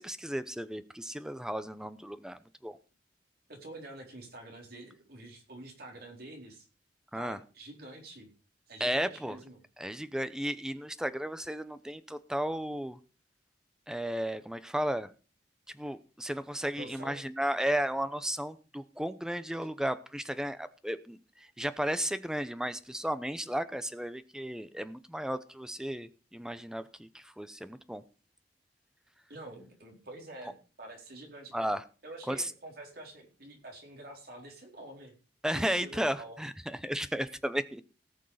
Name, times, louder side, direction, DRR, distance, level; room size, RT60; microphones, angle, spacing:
voice 1, 0.0-2.8 7.1-7.4 8.8-9.4 9.8-13.0 13.9-15.1 15.7-21.2 21.6-28.0 31.5-31.8 32.3-32.5 35.4-37.8, equal, 5° right, 12 dB, 0.8 m, -34 dB
voice 2, 3.5-6.7 7.1-8.3 8.7-9.6 16.8-17.2 29.3-31.5 32.0-35.1 35.5-36.4, right 2 dB, 60° right, 1 dB, 4.1 m, -47 dB
18.0 x 6.5 x 5.0 m, 0.35 s
head